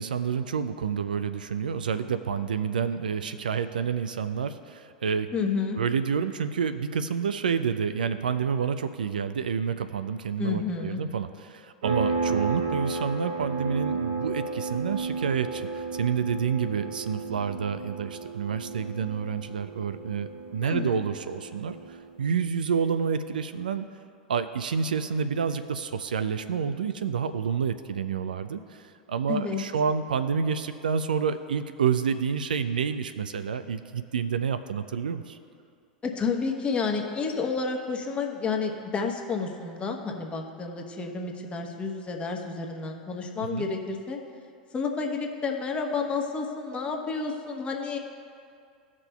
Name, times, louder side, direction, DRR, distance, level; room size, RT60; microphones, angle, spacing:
voice 1, 0.0-5.3 5.7-23.8 24.3-35.4 43.5-43.7, right 6 dB, 75° right, 10 dB, 0.4 m, -29 dB
voice 2, 5.3-5.8 10.4-11.0 20.6-21.0 29.3-29.6 36.0-44.2 44.7-48.0, left 4 dB, 25° left, 2 dB, 1.0 m, -30 dB
sound 1, 11.8-22.2, right 4 dB, 55° right, 0.8 m, -33 dB
16.0 x 6.0 x 2.3 m, 2.3 s
figure-of-eight pair, 90°, 5 cm